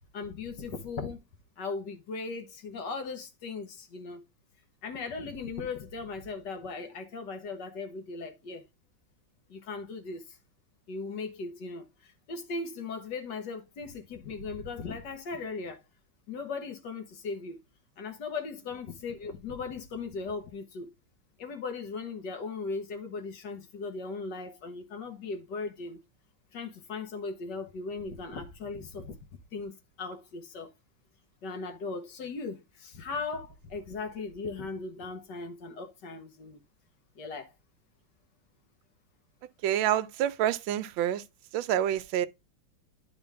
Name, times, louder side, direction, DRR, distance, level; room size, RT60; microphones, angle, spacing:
voice 1, 0.1-1.2 1.6-4.2 4.8-8.7 9.5-10.4 10.9-15.8 16.3-17.6 18.0-20.9 21.4-26.0 26.5-29.2 29.5-30.7 31.4-36.6 37.2-37.5, left 4 dB, 60° left, 1.7 m, -38 dB
voice 2, 39.6-41.2 41.5-42.3, right 11 dB, 75° right, 1.3 m, -27 dB
10.5 x 3.7 x 3.4 m
omnidirectional pair, 2.2 m